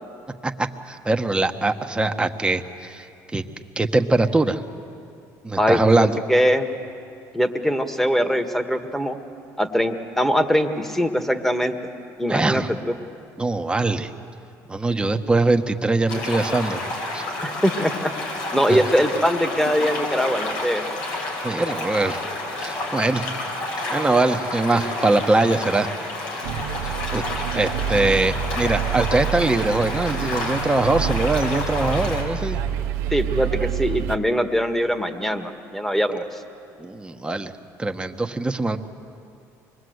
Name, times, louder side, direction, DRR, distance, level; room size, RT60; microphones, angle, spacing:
voice 1, 0.4-3.1 3.3-3.4 3.8-4.6 5.4-6.1 12.3-12.7 13.4-14.1 14.7-17.2 18.7-18.8 21.4-22.2 22.6-23.3 23.9-25.9 27.1-27.2 27.5-32.6 36.8-37.5 37.8-38.8, right 2 dB, 15° right, 6 dB, 1.3 m, -22 dB
voice 2, 5.6-6.7 7.3-9.2 9.6-11.7 12.2-12.6 17.4-18.1 18.5-20.8 33.1-36.4, equal, 5° left, 7 dB, 1.7 m, -22 dB
sound 1, 16.1-32.2, left 2 dB, 85° left, 5.2 m, -30 dB
sound 2, 26.4-34.2, right 8 dB, 90° right, 1.0 m, -28 dB
25.0 x 21.0 x 8.0 m, 2.6 s
supercardioid pair, 85°, 7 cm